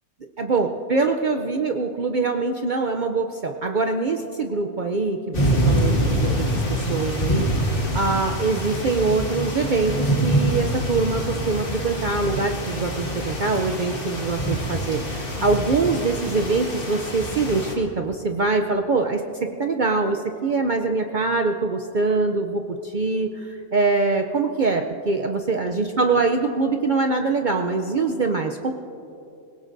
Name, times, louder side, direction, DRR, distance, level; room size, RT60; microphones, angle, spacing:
voice 1, 0.4-28.7, right 3 dB, 50° right, 4 dB, 0.6 m, -24 dB
sound 1, 5.3-17.7, equal, 45° left, 2.1 m, -25 dB
26.5 x 17.5 x 2.6 m, 2.8 s
omnidirectional pair, 1.3 m